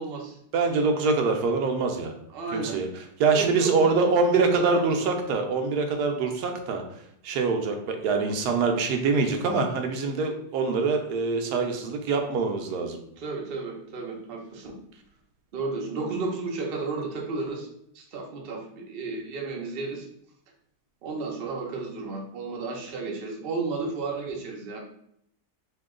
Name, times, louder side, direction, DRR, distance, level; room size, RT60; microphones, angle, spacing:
voice 1, 0.0-0.4 2.3-2.8 3.3-4.3 4.6-5.0 13.2-14.7 15.5-17.7 17.9-20.1 21.0-24.8, right 3 dB, 55° right, 1 dB, 0.6 m, -33 dB
voice 2, 0.5-2.1 2.5-6.8 7.2-13.0, right 4 dB, 75° right, 4 dB, 1.1 m, -24 dB
3.0 x 2.8 x 3.6 m, 0.70 s
omnidirectional pair, 1.8 m